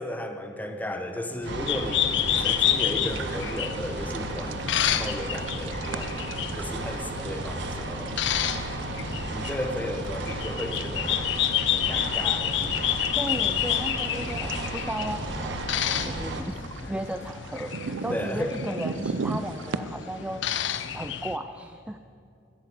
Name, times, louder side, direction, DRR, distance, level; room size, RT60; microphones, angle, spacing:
voice 1, 0.0-6.2 6.6-8.2 9.3-12.8 18.1-18.5, left 1 dB, 10° left, 6 dB, 1.0 m, -34 dB
sound 1, 1.4-21.4, left 11 dB, 65° left, 0.6 m, -30 dB
sound 2, 1.4-16.4, right 2 dB, 65° right, 1.3 m, -34 dB
sound 3, 2.3-19.8, right 4 dB, 85° right, 0.6 m, -40 dB
voice 2, 13.2-15.6 16.0-22.0, right 1 dB, 5° right, 9 dB, 0.3 m, -35 dB
13.0 x 8.2 x 8.6 m, 2.4 s
head